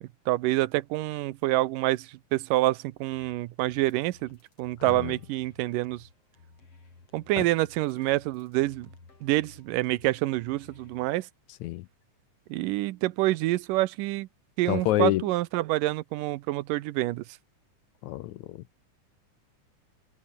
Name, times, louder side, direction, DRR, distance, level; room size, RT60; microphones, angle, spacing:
voice 1, 0.0-6.0 7.1-8.9 9.2-11.3 12.5-14.3 14.6-17.2, right 17 dB, 85° right, 2.3 m, -27 dB
sound 1, 3.1-11.1, left 3 dB, 45° left, 6.8 m, -56 dB
voice 2, 4.8-5.2 7.4-7.5 11.6-11.9 14.7-15.3 18.0-18.6, left 15 dB, 75° left, 1.8 m, -28 dB
omnidirectional pair, 3.8 m